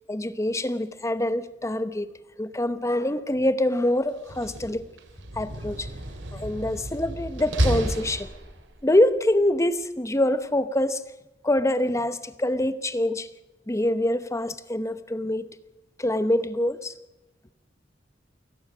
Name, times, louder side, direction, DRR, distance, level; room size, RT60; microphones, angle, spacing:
voice 1, 0.1-2.1 2.4-4.8 5.4-5.9 6.3-8.3 8.8-11.0 11.4-13.3 13.7-15.5 16.0-16.9, left 1 dB, 15° left, 12 dB, 0.9 m, -25 dB
Slam, 4.1-8.8, right 1 dB, 85° right, 2.7 m, -31 dB
29.5 x 16.5 x 6.2 m, 1.0 s
head